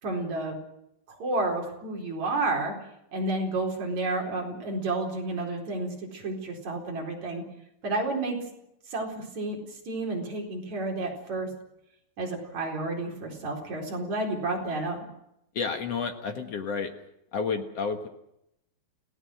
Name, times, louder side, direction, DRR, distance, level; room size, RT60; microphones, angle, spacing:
voice 1, 0.0-0.6 1.1-2.8 3.1-7.4 7.8-8.4 8.9-9.6 9.9-11.5 12.2-15.0, right 2 dB, 45° right, 0 dB, 5.2 m, -30 dB
voice 2, 15.5-16.9 17.3-18.1, left 5 dB, 60° left, 5 dB, 1.8 m, -30 dB
28.0 x 17.5 x 6.4 m, 0.81 s
omnidirectional pair, 4.7 m